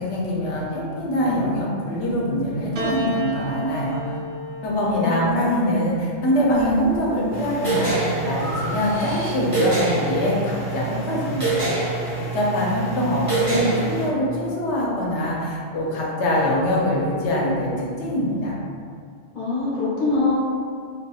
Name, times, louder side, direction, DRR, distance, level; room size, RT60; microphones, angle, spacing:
voice 1, 0.0-4.0 4.6-11.7 12.3-18.5, equal, 85° left, -4 dB, 0.9 m, -23 dB
Piano, 2.8-7.2 8.3-9.0, equal, 60° right, 0.6 m, -34 dB
voice 2, 4.8-5.3 19.3-20.3, left 3 dB, 50° left, -9 dB, 0.9 m, -24 dB
Breathing, 6.5-7.0 7.5-9.7, equal, 15° left, 0.7 m, -36 dB
sound 1, 7.3-14.1, right 3 dB, 15° right, 1.0 m, -26 dB
2.7 x 2.4 x 2.3 m, 2.2 s
omnidirectional pair, 1.1 m